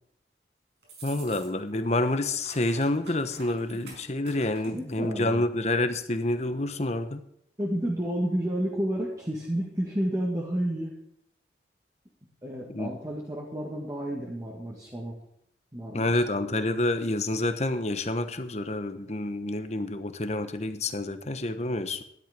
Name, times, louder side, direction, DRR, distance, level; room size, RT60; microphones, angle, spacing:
sound 1, 0.8-1.8 2.0-5.0, right 3 dB, 75° right, 5.8 m, -48 dB
voice 1, 1.0-7.2 12.7-13.0 15.9-22.0, left 2 dB, 40° left, 9 dB, 1.1 m, -28 dB
voice 2, 4.7-5.4 7.6-10.9 12.4-15.2 15.7-16.2, equal, 20° right, -3 dB, 2.0 m, -31 dB
13.5 x 11.5 x 5.2 m, 0.72 s
head